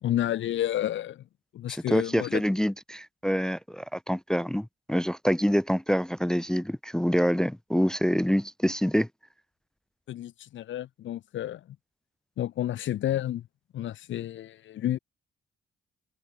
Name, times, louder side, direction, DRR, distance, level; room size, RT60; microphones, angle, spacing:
voice 1, 0.0-1.2 1.5-2.4 10.1-11.8 12.4-13.5 13.7-15.0, left 12 dB, 70° left, 1.6 m, -30 dB
voice 2, 1.7-9.1, equal, 5° left, 0.4 m, -26 dB
cardioid pair, 90°, 20 cm